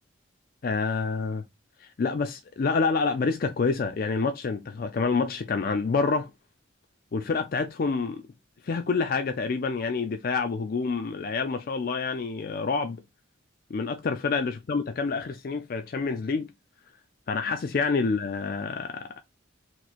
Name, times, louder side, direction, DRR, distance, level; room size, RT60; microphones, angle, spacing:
voice 1, 0.6-1.4 1.8-6.3 7.1-8.2 8.6-13.0 13.7-16.5 17.3-19.2, left 4 dB, 50° left, 0.4 m, -27 dB
3.0 x 2.7 x 4.0 m
head